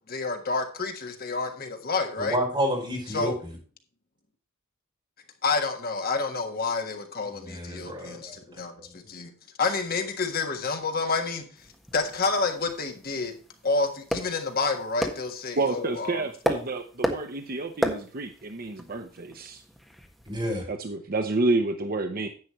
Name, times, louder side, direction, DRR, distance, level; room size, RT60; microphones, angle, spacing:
voice 1, 0.1-2.4 3.1-3.3 5.4-9.3 9.6-11.4 11.9-13.3 13.6-16.2, left 4 dB, 45° left, 5 dB, 1.6 m, -29 dB
voice 2, 2.2-3.3 7.4-8.4 20.3-20.7, equal, 25° right, -2 dB, 5.3 m, -29 dB
sound 1, 11.6-20.4, equal, ahead, 1.5 m, -35 dB
voice 3, 15.5-19.6 20.7-22.3, right 2 dB, 45° right, 6 dB, 0.8 m, -29 dB
10.5 x 9.1 x 3.1 m, 0.40 s
head